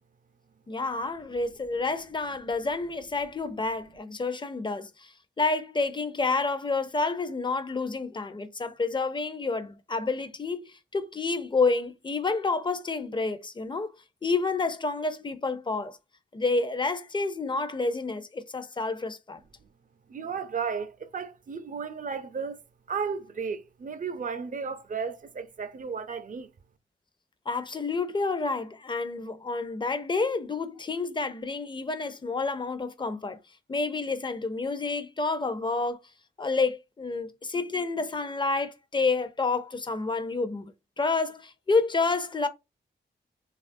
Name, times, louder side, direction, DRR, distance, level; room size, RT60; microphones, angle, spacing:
voice 1, 0.7-13.9 14.2-16.0 16.3-19.4 27.5-33.4 33.7-36.0 36.4-42.5, left 3 dB, 25° left, 0.5 m, -29 dB
voice 2, 20.1-22.6 22.9-26.5, right 5 dB, 45° right, 0.5 m, -34 dB
3.0 x 2.4 x 2.5 m
cardioid pair, 45°, 19 cm